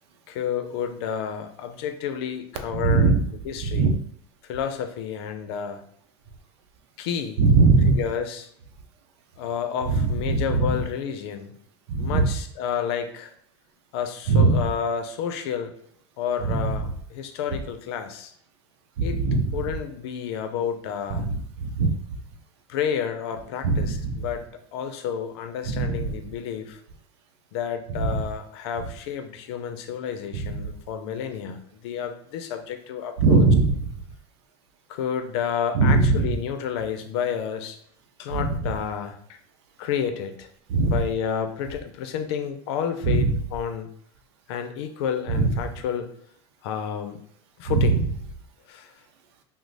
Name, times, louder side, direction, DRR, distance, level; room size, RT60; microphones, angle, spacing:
voice 1, 0.3-3.1 3.4-3.9 4.4-5.8 7.0-7.4 8.0-8.5 9.4-11.5 12.0-13.3 13.9-15.7 16.2-18.3 19.0-19.2 19.5-21.3 22.7-26.8 27.5-33.4 34.9-37.8 38.2-39.4 39.8-40.5 40.8-43.9 44.5-46.1 46.6-47.2 47.6-48.0 48.7-48.9, left 8 dB, 70° left, 7 dB, 0.5 m, -30 dB
voice 2, 2.7-3.2 3.6-3.9 7.4-8.0 9.9-10.8 11.9-12.3 14.3-14.6 16.4-16.7 19.0-19.6 21.1-21.9 23.6-24.2 25.7-26.1 27.9-28.2 30.3-30.6 33.2-33.9 35.7-36.4 38.3-38.7 40.7-41.0 43.0-43.3 45.3-45.5 47.7-48.0, right 3 dB, 80° right, 6 dB, 0.6 m, -21 dB
3.0 x 2.0 x 3.9 m, 0.66 s
supercardioid pair, 120°, 14 cm